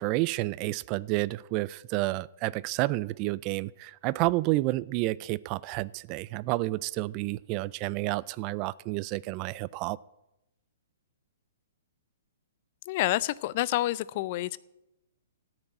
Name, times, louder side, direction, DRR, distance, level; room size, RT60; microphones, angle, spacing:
voice 1, 0.0-10.0, right 19 dB, 35° right, 20 dB, 0.4 m, -30 dB
voice 2, 12.9-14.6, left 16 dB, 45° left, 21 dB, 0.4 m, -28 dB
13.5 x 6.0 x 8.9 m, 0.92 s
hypercardioid pair, 135°, 0 cm